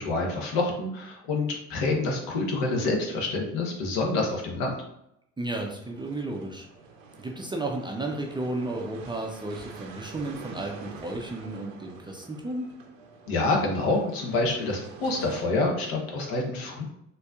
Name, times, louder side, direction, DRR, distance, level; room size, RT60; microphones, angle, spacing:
voice 1, 0.0-4.7 13.3-16.8, left 2 dB, 65° left, 1 dB, 1.0 m, -27 dB
voice 2, 5.4-6.7 7.2-12.7, right 2 dB, 10° right, 1 dB, 0.5 m, -33 dB
sound 1, 5.8-15.4, right 4 dB, 85° right, 0.7 m, -46 dB
4.2 x 2.6 x 2.4 m, 0.78 s
hypercardioid pair, 60°, 38 cm